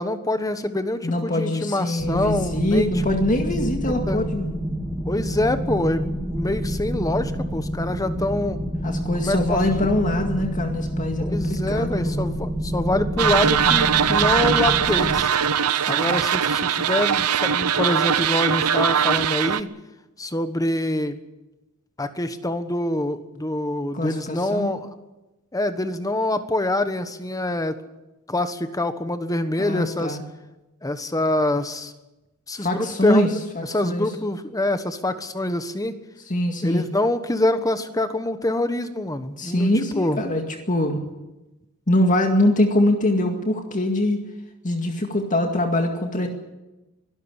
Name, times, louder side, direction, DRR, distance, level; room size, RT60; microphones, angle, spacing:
voice 1, 0.0-2.9 4.1-4.2 5.0-6.1 6.3-8.6 9.2-9.9 11.2-15.3 15.9-19.7 20.2-21.2 22.0-24.9 25.5-27.7 28.3-30.2 30.8-31.9 32.5-33.3 33.6-36.0 36.6-40.2, left 1 dB, 15° left, 10 dB, 1.3 m, -25 dB
voice 2, 1.0-4.5 8.8-12.2 15.7-16.2 23.9-24.7 29.6-30.2 32.6-33.3 33.6-34.1 36.3-36.9 39.4-41.0 41.9-44.2 44.6-46.3, left 1 dB, 35° left, 4 dB, 2.1 m, -23 dB
sound 1, 2.0-15.2, equal, 5° right, 1.7 m, -28 dB
sound 2, 13.2-19.6, right 8 dB, 85° right, 0.8 m, -21 dB
23.5 x 13.0 x 10.0 m, 1.0 s
head